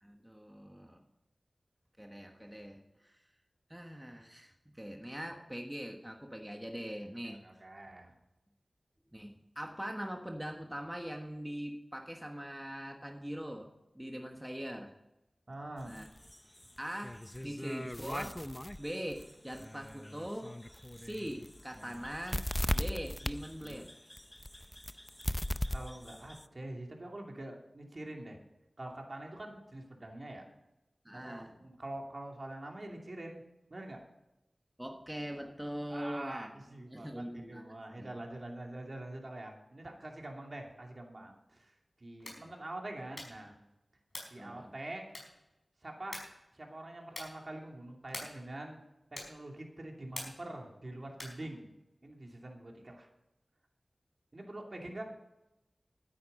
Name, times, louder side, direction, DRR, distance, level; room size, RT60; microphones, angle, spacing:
voice 1, 0.0-1.0 2.0-3.2 3.7-7.4 9.1-13.7 13.9-14.9 15.9-16.1 16.8-18.4 18.8-20.5 21.0-22.4 22.7-23.9 31.0-31.6 34.8-36.5 36.8-38.1 42.2-42.5 44.4-44.8, equal, 10° right, 2 dB, 1.3 m, -42 dB
voice 2, 7.2-8.1 15.5-15.9 25.7-28.4 28.8-30.5 31.1-33.4 33.7-34.0 35.9-41.7 42.0-43.5 44.3-45.2 45.8-46.2 46.5-48.8 49.1-51.7 52.0-53.1 54.3-55.0, right 1 dB, 50° right, 1 dB, 2.7 m, -45 dB
sound 1, 15.8-26.5, left 1 dB, 15° left, 0.5 m, -39 dB
sound 2, 42.1-42.5 43.1-43.5 44.1-44.4 45.1-45.5 46.1-46.4 47.1-47.4 48.1-48.5 49.1-49.5 50.1-50.5 51.1-51.5, left 1 dB, 40° left, 5.1 m, -45 dB
13.0 x 9.6 x 5.4 m, 0.94 s
wide cardioid pair, 60°, 0 cm